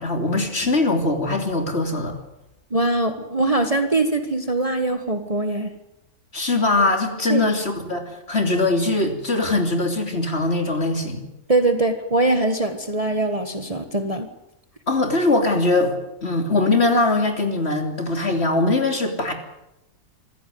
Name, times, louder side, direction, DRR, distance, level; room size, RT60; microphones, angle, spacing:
voice 1, 0.0-2.2 6.3-11.2 14.9-19.3, left 2 dB, 45° left, 4 dB, 3.5 m, -21 dB
voice 2, 2.7-5.7 7.3-7.4 11.5-14.3, right 2 dB, 25° right, 7 dB, 1.5 m, -22 dB
26.0 x 15.5 x 9.4 m, 0.90 s
omnidirectional pair, 1.6 m